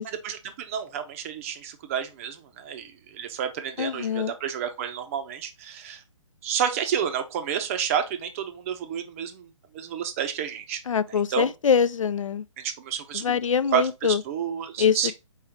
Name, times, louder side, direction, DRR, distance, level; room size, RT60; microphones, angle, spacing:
voice 1, 0.2-6.0 6.4-10.8 11.1-11.5 12.6-13.4 13.7-15.1, right 8 dB, 25° right, 0.5 m, -30 dB
voice 2, 3.8-4.3 10.9-12.4 13.1-14.2 14.8-15.1, left 7 dB, 70° left, 0.4 m, -24 dB
4.3 x 3.7 x 2.9 m
figure-of-eight pair, 135°, 17 cm